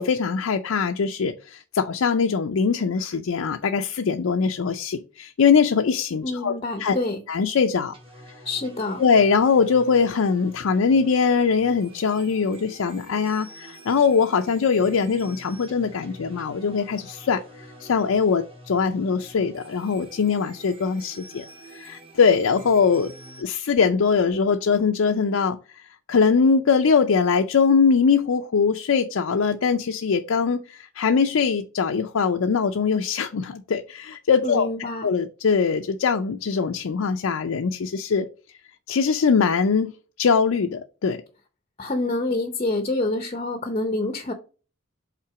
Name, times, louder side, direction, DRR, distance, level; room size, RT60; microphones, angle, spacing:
voice 1, 0.0-6.5 6.8-7.0 7.3-7.9 9.0-17.4 17.8-21.4 21.7-23.1 23.4-25.6 26.1-34.7 35.0-38.3 38.9-39.9 40.2-41.2, left 5 dB, 80° left, 6 dB, 0.5 m, -22 dB
voice 2, 6.2-7.2 8.4-9.0 34.4-35.1 41.8-44.3, left 2 dB, 30° left, 8 dB, 0.6 m, -27 dB
sound 1, 7.9-23.4, right 1 dB, 25° right, 1.2 m, -46 dB
5.7 x 3.8 x 4.8 m, 0.36 s
head